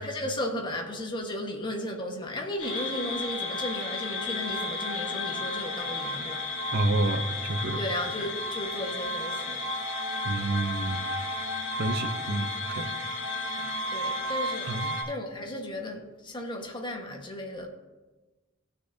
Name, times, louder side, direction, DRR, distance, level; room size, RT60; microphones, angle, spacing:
voice 1, 0.0-6.5 7.8-9.6 13.9-17.7, left 1 dB, 25° left, 1.3 m, -35 dB
sound 1, 2.6-15.0, left 1 dB, 70° left, 2.3 m, -33 dB
voice 2, 6.7-7.8 10.2-11.0 11.8-12.5 12.8-12.9 14.7-15.0, right 2 dB, 50° right, 0.7 m, -28 dB
17.0 x 6.6 x 2.7 m
head